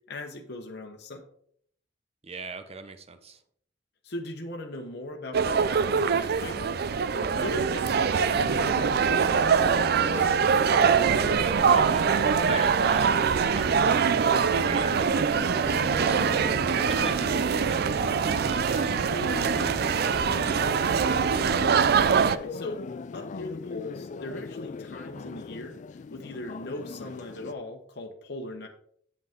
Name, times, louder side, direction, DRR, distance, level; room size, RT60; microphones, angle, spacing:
voice 1, 0.1-1.2 4.0-6.8 7.1-9.5 21.8-22.8 23.1-28.7, left 1 dB, 60° left, 2 dB, 1.0 m, -39 dB
voice 2, 2.2-3.4 10.7-20.8, right 3 dB, 35° right, 9 dB, 0.8 m, -40 dB
sound 1, 5.3-22.4, right 6 dB, 60° right, 0.4 m, -23 dB
sound 2, 8.3-27.5, left 4 dB, 40° left, 0.3 m, -39 dB
8.0 x 7.9 x 3.6 m, 0.64 s
head